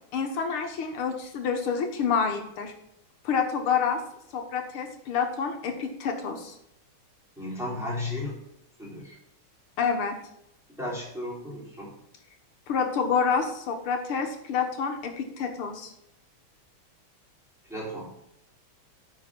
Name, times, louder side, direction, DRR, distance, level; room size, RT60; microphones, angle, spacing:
voice 1, 0.1-2.7 3.2-4.0 4.3-6.5 9.8-10.2 12.7-15.9, left 6 dB, 85° left, 4 dB, 2.1 m, -28 dB
voice 2, 7.4-8.4 8.8-9.2 10.8-11.9 17.7-18.1, left 1 dB, ahead, -6 dB, 3.1 m, -34 dB
9.4 x 4.9 x 5.9 m, 0.78 s
omnidirectional pair, 2.3 m